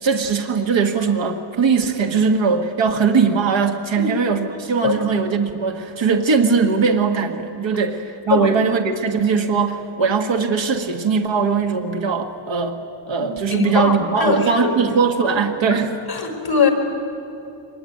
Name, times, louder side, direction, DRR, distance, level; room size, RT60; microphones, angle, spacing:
voice 1, 0.0-12.8 13.1-16.0, right 5 dB, 65° right, 5 dB, 1.7 m, -20 dB
voice 2, 13.1-14.8 15.7-15.8 16.1-16.7, left 6 dB, 50° left, 4 dB, 4.3 m, -21 dB
24.0 x 21.5 x 9.3 m, 2.9 s
wide cardioid pair, 130°, 48 cm